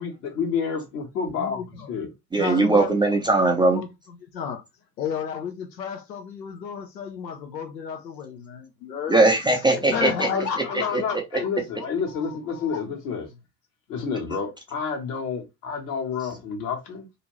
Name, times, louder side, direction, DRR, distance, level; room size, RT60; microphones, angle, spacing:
voice 1, 0.0-2.1 10.2-13.3 13.9-17.1, left 6 dB, 65° left, 1.3 m, -29 dB
voice 2, 1.4-1.9 2.4-2.9 3.7-3.9 4.3-4.6 5.0-9.2 9.7-11.2 12.1-12.8, left 7 dB, 85° left, 0.6 m, -33 dB
voice 3, 2.3-3.8 9.1-10.3 10.9-11.0, right 2 dB, 10° right, 0.4 m, -20 dB
2.7 x 2.5 x 3.0 m
figure-of-eight pair, 60°, 50 cm